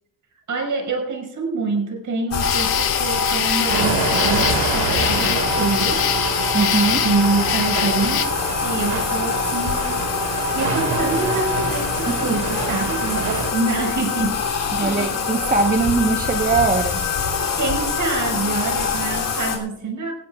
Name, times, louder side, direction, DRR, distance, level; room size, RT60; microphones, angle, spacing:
voice 1, 0.5-6.0 7.0-8.3 8.6-14.4 14.8-15.2 17.6-20.1, right 3 dB, 55° right, 2 dB, 5.3 m, -26 dB
Bathtub (filling or washing), 2.3-19.6, left 5 dB, 60° left, 3.2 m, -24 dB
sound 1, 2.4-8.2, left 10 dB, 75° left, 1.6 m, -25 dB
sound 2, 3.7-13.5, right 4 dB, 80° right, 5.3 m, -27 dB
voice 2, 6.5-7.0 12.1-12.4 13.2-13.3 14.7-17.1, right 4 dB, 25° right, 5 dB, 1.1 m, -21 dB
17.0 x 17.0 x 2.4 m, 0.80 s
cardioid pair, 95°, 37 cm